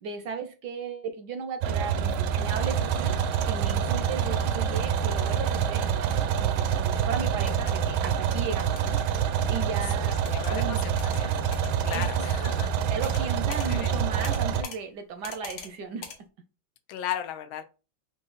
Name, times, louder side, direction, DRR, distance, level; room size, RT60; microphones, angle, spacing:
voice 1, 0.0-3.2 3.4-6.1 6.4-11.0 11.9-12.5 12.9-16.1, right 5 dB, 75° right, 1.0 m, -36 dB
sound 1, 1.6-14.6, right 8 dB, 90° right, 1.4 m, -26 dB
sound 2, 7.3-7.7 8.8-9.0 10.2-10.5 11.0-11.2 11.5-12.1 13.0-13.2 13.5-13.7 14.2-14.8 15.2-15.7 16.0-16.2, left 6 dB, 60° left, 0.9 m, -41 dB
voice 2, 10.0-11.5 11.8-12.7 13.1-13.3 13.6-13.9 16.9-17.6, left 11 dB, 85° left, 1.4 m, -36 dB
4.9 x 2.5 x 3.9 m
omnidirectional pair, 2.2 m